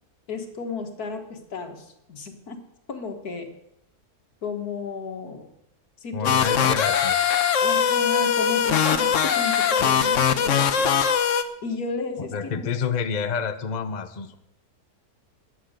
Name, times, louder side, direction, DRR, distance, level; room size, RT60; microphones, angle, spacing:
voice 1, 0.3-2.6 2.9-3.5 4.4-5.5 6.0-6.6 7.6-10.9 11.6-12.7, left 4 dB, 80° left, 5 dB, 2.1 m, -33 dB
voice 2, 6.1-7.2 9.8-10.2 12.2-14.4, left 6 dB, 35° left, 9 dB, 0.8 m, -29 dB
sound 1, 6.2-11.4, left 7 dB, 60° left, 1.1 m, -21 dB
14.0 x 10.0 x 6.7 m, 0.80 s
omnidirectional pair, 1.6 m